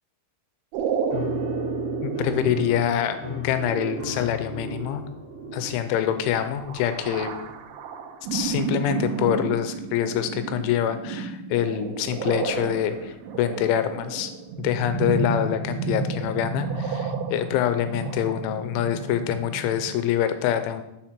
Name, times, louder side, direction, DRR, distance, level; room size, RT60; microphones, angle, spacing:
sound 1, 0.7-19.9, right 5 dB, 80° right, 3.0 m, -32 dB
Piano, 1.1-7.9, left 4 dB, 40° right, 0.5 m, -38 dB
voice 1, 2.0-5.0 5.5-7.3 8.3-14.3 14.6-20.8, left 10 dB, 90° left, 9 dB, 3.1 m, -25 dB
7.3 x 5.7 x 5.1 m, 0.87 s
omnidirectional pair, 5.4 m